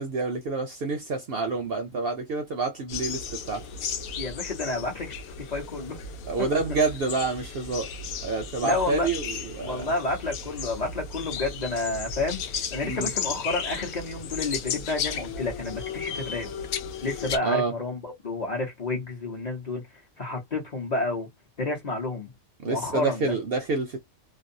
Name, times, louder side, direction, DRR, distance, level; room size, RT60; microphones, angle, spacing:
voice 1, 0.0-3.7 6.3-7.9 8.2-9.9 12.8-13.1 17.4-17.7 22.6-24.0, right 3 dB, 60° right, 0.6 m, -28 dB
sound 1, 2.9-17.4, left 6 dB, 85° left, 1.0 m, -35 dB
voice 2, 4.2-6.0 6.4-6.5 8.6-9.1 9.6-16.5 17.0-19.8 20.2-21.3 21.6-22.3 22.7-23.3, left 3 dB, 40° left, 0.7 m, -30 dB
2.5 x 2.1 x 2.5 m
omnidirectional pair, 1.4 m